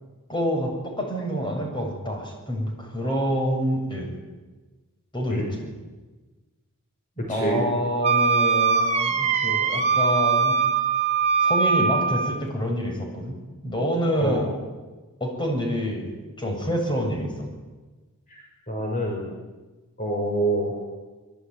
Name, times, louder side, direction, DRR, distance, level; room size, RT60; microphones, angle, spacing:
voice 1, 0.3-4.1 5.1-5.7 7.3-10.5 11.4-13.3 13.6-14.5 15.2-16.1 16.4-17.5, equal, 20° left, 2 dB, 7.7 m, -27 dB
voice 2, 7.3-7.7 14.2-14.5 18.3-18.4 18.7-19.3 20.0-20.7, right 1 dB, 35° left, 0 dB, 5.9 m, -26 dB
Wind instrument woodwind instrument, 8.0-12.4, right 5 dB, 30° right, 2.4 m, -22 dB
25.5 x 24.0 x 9.7 m, 1.2 s
head